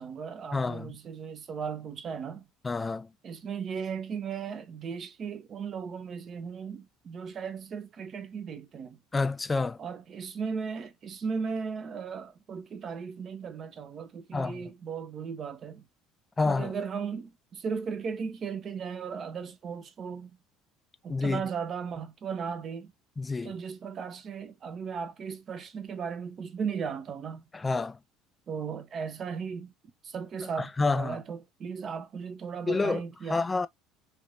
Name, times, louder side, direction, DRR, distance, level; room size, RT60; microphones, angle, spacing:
voice 1, 0.0-2.4 3.2-9.0 9.8-15.8 16.4-20.4 21.0-22.9 23.4-27.4 28.5-29.7 30.0-33.4, right 6 dB, 45° right, 0.7 m, -36 dB
voice 2, 0.5-0.9 2.6-3.1 9.1-9.8 14.3-14.6 16.4-16.8 21.1-21.4 23.2-23.6 27.5-28.0 30.6-31.2 32.7-33.0 33.3-33.7, left 3 dB, 20° left, 0.3 m, -28 dB
3.3 x 2.6 x 2.5 m
hypercardioid pair, 75°, 0 cm